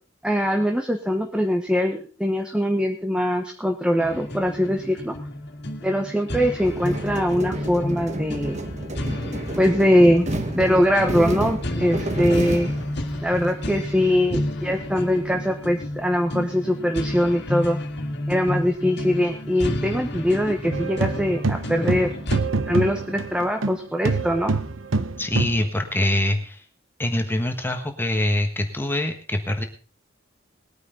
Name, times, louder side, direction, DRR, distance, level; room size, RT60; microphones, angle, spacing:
voice 1, 0.2-5.1 5.8-8.6 9.6-10.3 10.5-12.7 13.2-17.8 18.3-22.1 22.7-24.5, equal, 5° right, 4 dB, 1.1 m, -22 dB
sound 1, 4.0-22.4, left 1 dB, 60° left, 2.2 m, -31 dB
sound 2, 6.6-13.5, right 1 dB, 35° right, 1.5 m, -30 dB
sound 3, 20.7-23.8 24.0-25.7, right 3 dB, 85° right, 0.9 m, -25 dB
voice 2, 25.2-26.6 27.0-29.6, left 1 dB, 10° left, 4 dB, 1.4 m, -24 dB
20.5 x 9.7 x 3.9 m, 0.37 s
head